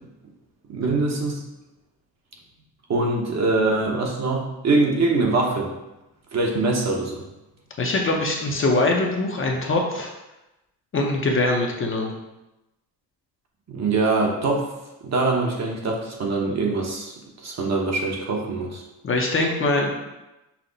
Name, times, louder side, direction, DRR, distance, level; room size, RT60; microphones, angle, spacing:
voice 1, 0.7-1.4 2.9-5.7 6.3-7.1 13.7-14.7 15.0-17.1 17.4-18.8, right 3 dB, 40° right, 0 dB, 0.9 m, -23 dB
voice 2, 7.8-10.1 10.9-12.1 19.0-19.9, left 2 dB, 35° left, 0 dB, 0.7 m, -22 dB
5.7 x 2.1 x 3.9 m, 0.97 s
cardioid pair, 110°, 39 cm